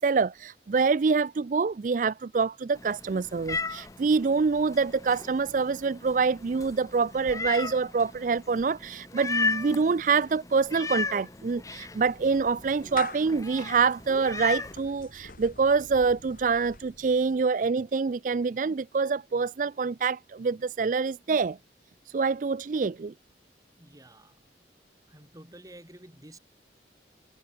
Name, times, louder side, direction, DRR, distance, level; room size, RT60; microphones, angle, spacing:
voice 1, 0.0-21.6 22.1-23.1, right 5 dB, 45° right, 0.4 m, -26 dB
Meow, 2.7-14.8, left 4 dB, 20° left, 0.8 m, -36 dB
Clapping / Meow, 11.3-17.5, left 4 dB, 50° left, 2.0 m, -46 dB
voice 2, 23.7-24.4 25.1-26.4, right 1 dB, 20° right, 2.7 m, -50 dB
head